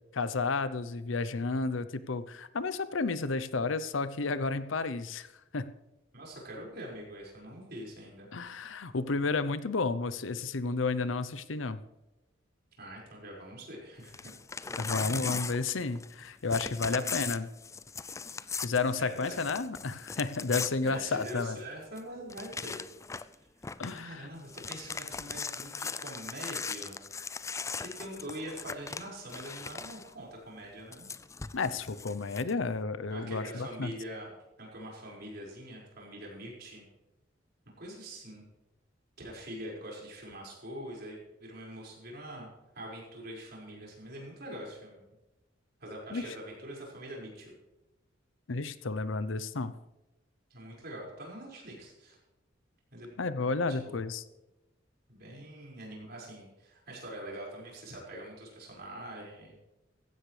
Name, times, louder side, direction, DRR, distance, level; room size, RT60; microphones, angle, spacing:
voice 1, 0.1-5.3 5.5-5.7 8.3-11.8 14.8-17.5 18.6-21.6 23.8-24.3 31.5-33.9 46.1-46.2 48.5-49.7 53.2-54.2, left 4 dB, 90° left, 14 dB, 0.7 m, -32 dB
voice 2, 6.1-8.3 12.8-14.3 14.8-15.4 16.9-17.3 19.0-19.4 20.8-22.8 23.1-27.0 27.5-31.1 33.1-34.3 34.6-36.8 37.8-38.4 39.2-42.5 42.7-45.0 45.8-47.5 50.5-52.2 52.9-53.2 53.7-54.0 55.1-59.5, right 1 dB, 55° right, -3 dB, 5.4 m, -44 dB
Crumpling crinkling / Tearing, 14.0-16.2 16.5-21.6 22.0-22.1 22.3-23.3 23.6-24.0 24.4-30.1 30.9-32.5, left 5 dB, 15° left, 0.3 m, -39 dB
16.5 x 15.0 x 3.3 m, 0.99 s
head